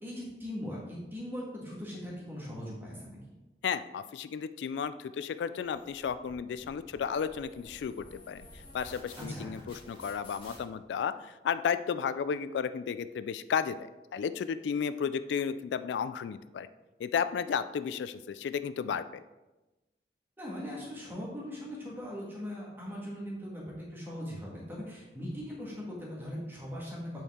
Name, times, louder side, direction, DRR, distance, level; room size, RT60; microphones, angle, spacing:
voice 1, 0.0-3.2 9.2-9.6 20.4-27.2, equal, 10° right, -4 dB, 1.7 m, -40 dB
voice 2, 3.6-8.4 8.7-13.7 14.1-16.7 17.0-19.0, left 7 dB, 85° left, 12 dB, 0.3 m, -33 dB
sound 1, 5.6-10.6, left 1 dB, 30° left, 1.9 m, -52 dB
8.2 x 4.5 x 3.6 m, 1.1 s
head